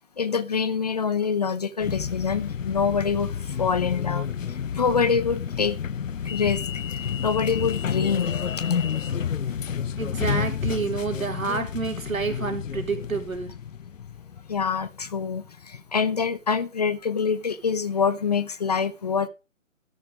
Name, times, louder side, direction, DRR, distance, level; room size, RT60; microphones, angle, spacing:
voice 1, 0.2-5.8 6.2-6.6 6.9-8.4 14.5-19.3, left 6 dB, 30° left, 0.7 m, -25 dB
sound 1, 1.8-15.8, left 7 dB, 70° left, 0.8 m, -30 dB
voice 2, 10.0-13.5, right 4 dB, 80° right, 4.1 m, -29 dB
13.0 x 6.6 x 5.1 m
figure-of-eight pair, 150°, 40 cm